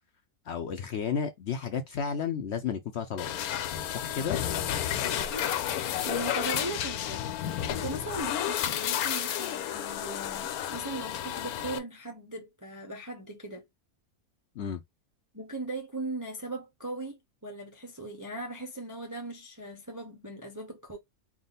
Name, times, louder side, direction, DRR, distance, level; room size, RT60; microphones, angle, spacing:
voice 1, 0.5-3.3 3.9-4.4 14.6-14.8, left 7 dB, 65° left, 0.7 m, -32 dB
sound 1, 3.2-11.8, left 10 dB, 85° left, 1.1 m, -31 dB
voice 2, 5.3-7.4 7.7-13.7 15.3-21.0, right 2 dB, 25° right, 0.4 m, -39 dB
3.5 x 2.4 x 3.9 m
omnidirectional pair, 1.5 m